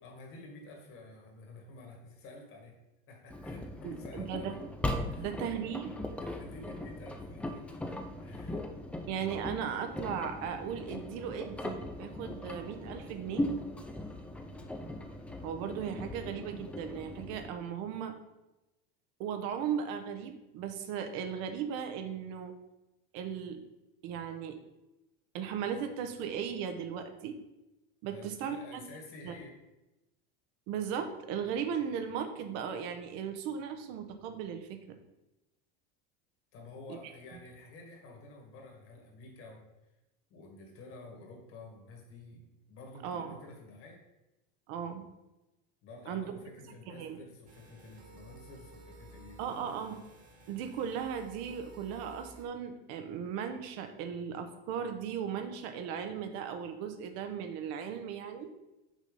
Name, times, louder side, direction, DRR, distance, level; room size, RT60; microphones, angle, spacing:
voice 1, 0.0-2.8 3.1-4.6 5.1-5.3 6.2-7.7 8.2-8.7 28.1-29.6 36.5-39.7 40.3-44.0 45.8-49.8, left 2 dB, 45° left, 0 dB, 2.0 m, -50 dB
Engine, 3.3-17.5, left 1 dB, 5° left, 0.4 m, -39 dB
voice 2, 3.8-4.5 5.2-6.0 9.1-13.5 15.4-18.1 19.2-22.5 23.1-23.6 24.0-24.6 25.3-27.4 28.0-28.9 29.2-29.3 30.7-35.0 36.9-37.0 43.0-43.3 44.7-45.0 46.1-46.3 46.9-47.2 49.4-50.0 50.5-58.5, right 7 dB, 55° right, 7 dB, 1.0 m, -37 dB
sound 1, 47.5-52.5, right 2 dB, 25° right, 1.5 m, -54 dB
6.3 x 4.1 x 5.4 m, 0.97 s
supercardioid pair, 135°, 30 cm